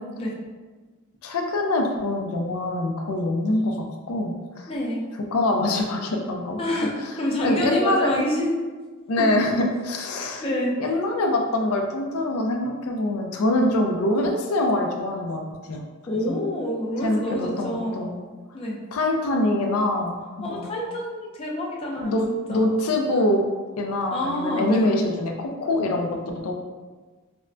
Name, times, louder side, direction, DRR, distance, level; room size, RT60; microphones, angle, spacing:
voice 1, 1.2-4.7 5.3-6.6 7.4-8.2 9.1-10.4 10.8-15.8 16.3-16.4 17.0-18.1 18.9-20.7 22.0-23.4 23.8-26.5, left 1 dB, 85° left, 2 dB, 0.4 m, -24 dB
voice 2, 4.7-5.0 6.6-8.5 9.2-9.3 10.4-10.8 16.1-18.1 18.5-18.8 20.4-22.7 24.1-25.1, equal, 25° left, -3 dB, 0.5 m, -27 dB
4.3 x 2.1 x 2.5 m, 1.4 s
head